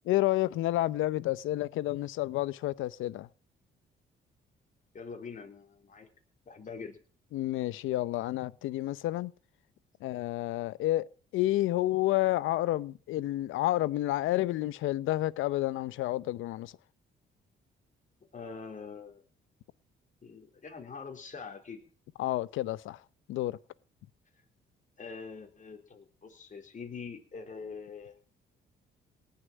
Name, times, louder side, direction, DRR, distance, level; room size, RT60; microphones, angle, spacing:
voice 1, 0.1-3.3 7.3-9.3 10.0-11.1 11.3-16.7 22.2-23.0 23.3-23.6, left 15 dB, 85° left, 0.7 m, -30 dB
voice 2, 4.9-6.1 6.5-7.0 18.3-19.2 20.2-21.8 25.0-28.1, left 5 dB, 40° left, 3.9 m, -44 dB
18.5 x 6.7 x 9.1 m
cardioid pair, 90°, 20 cm